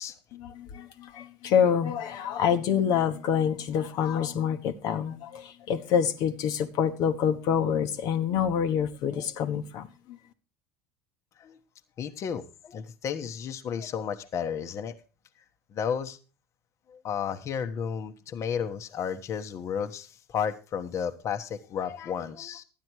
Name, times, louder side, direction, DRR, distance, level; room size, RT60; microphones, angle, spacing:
voice 1, 0.3-9.9, left 8 dB, 55° left, 1.2 m, -27 dB
voice 2, 12.0-14.9 15.7-16.2 16.9-22.6, left 7 dB, 40° left, 1.2 m, -33 dB
12.0 x 9.6 x 4.7 m
supercardioid pair, 110°, 8 cm